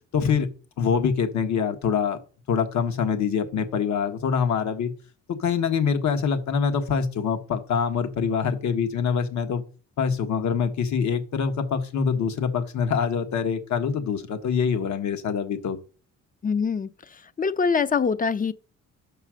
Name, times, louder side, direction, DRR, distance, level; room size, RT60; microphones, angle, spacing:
voice 1, 0.1-0.5 0.8-2.2 2.5-4.9 5.3-9.6 10.0-15.8, left 6 dB, 70° left, 1.4 m, -25 dB
voice 2, 16.4-18.5, left 5 dB, 30° left, 0.6 m, -24 dB
6.4 x 5.4 x 6.3 m
cardioid pair, 90°, 30 cm